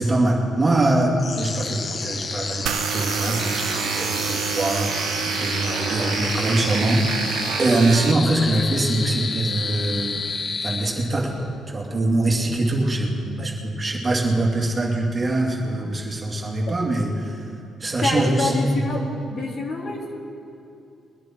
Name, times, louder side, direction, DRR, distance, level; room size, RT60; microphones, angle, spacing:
voice 1, 0.0-11.5 11.7-17.5 17.8-18.8, right 2 dB, 30° right, -2 dB, 2.5 m, -23 dB
sound 1, 1.2-11.4, left 4 dB, 40° left, 0.6 m, -30 dB
sound 2, 2.7-8.1, right 10 dB, 80° right, 0.5 m, -28 dB
voice 2, 18.0-19.0 19.3-20.2, left 3 dB, 60° left, -1 dB, 2.7 m, -26 dB
21.5 x 10.5 x 4.6 m, 2.6 s
cardioid pair, 90°, 0 cm